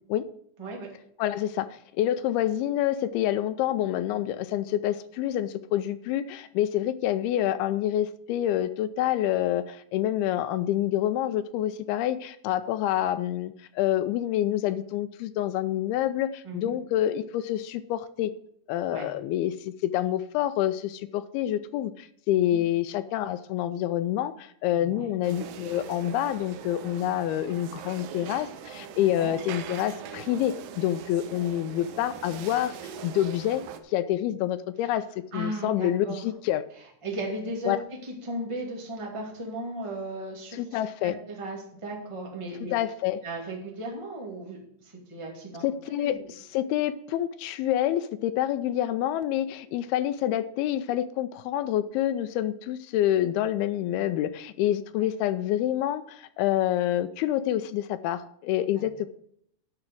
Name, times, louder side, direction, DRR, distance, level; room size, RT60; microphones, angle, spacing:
voice 1, 1.2-18.3 18.7-35.1 35.3-36.6 37.7-37.8 40.6-41.2 42.7-43.2 45.6-59.1, left 12 dB, 80° left, 12 dB, 2.3 m, -27 dB
voice 2, 16.4-16.8 18.9-19.1 22.3-22.6 24.7-25.1 29.0-29.4 34.8-34.9 35.3-36.2 36.8-42.7 43.2-46.3 49.6-49.8 55.0-55.1 58.8-58.9, right 1 dB, 10° right, -1 dB, 1.6 m, -36 dB
sound 1, 25.2-33.8, right 8 dB, 75° right, 2.1 m, -42 dB
9.7 x 6.1 x 7.7 m, 0.69 s
omnidirectional pair, 4.7 m